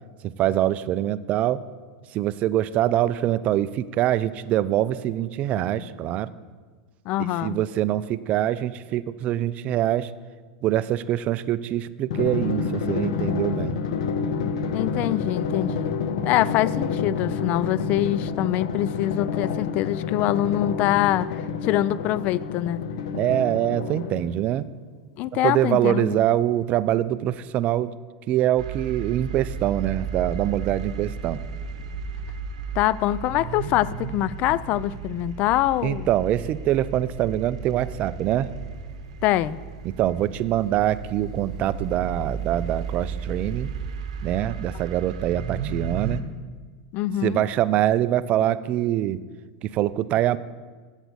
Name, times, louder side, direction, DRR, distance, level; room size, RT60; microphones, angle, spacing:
voice 1, 0.4-1.6 2.1-6.3 7.4-10.1 10.6-13.8 23.1-24.7 25.3-27.9 28.3-31.4 35.8-38.5 40.0-43.7 44.2-46.2 47.2-49.2 49.6-50.4, right 12 dB, 45° right, 16 dB, 0.4 m, -24 dB
voice 2, 7.1-7.6 14.7-16.0 16.2-22.8 25.2-26.2 32.8-36.1 39.2-39.6 46.9-47.4, left 14 dB, 50° left, 19 dB, 0.3 m, -24 dB
Drum, 12.1-24.5, left 6 dB, 75° left, 0.8 m, -28 dB
sound 1, 28.6-46.2, right 5 dB, 85° right, 0.9 m, -34 dB
8.1 x 8.1 x 7.9 m, 1.4 s
supercardioid pair, 120°, 3 cm